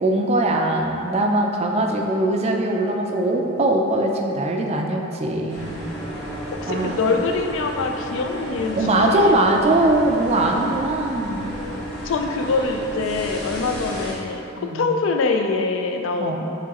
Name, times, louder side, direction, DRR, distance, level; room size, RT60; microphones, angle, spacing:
voice 1, 0.0-5.8 6.7-7.0 8.8-11.5 14.6-14.9 16.2-16.4, right 1 dB, 30° right, 1 dB, 0.4 m, -21 dB
sound 1, 5.5-14.1, right 1 dB, 25° left, 1.3 m, -32 dB
voice 2, 6.6-9.4 12.0-16.5, left 4 dB, 65° left, 4 dB, 0.4 m, -24 dB
5.9 x 3.1 x 2.9 m, 2.9 s
head